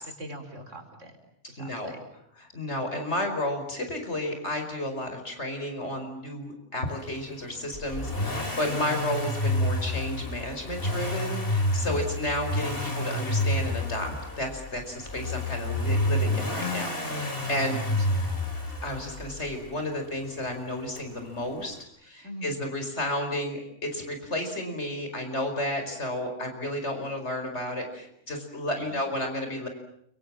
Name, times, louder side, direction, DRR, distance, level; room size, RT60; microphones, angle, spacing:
voice 1, 0.2-1.2 1.5-2.0 11.8-12.2 17.4-18.4 22.2-22.6 28.7-29.0, right 1 dB, 85° right, 6 dB, 4.7 m, -43 dB
voice 2, 1.6-1.9 2.5-14.1 14.4-17.8 18.8-21.8 22.0-29.7, left 1 dB, 65° left, 5 dB, 5.4 m, -32 dB
Accelerating revving vroom, 7.7-19.7 21.0-21.1, left 1 dB, 50° left, 4.8 m, -29 dB
30.0 x 24.5 x 7.5 m, 0.71 s
omnidirectional pair, 1.2 m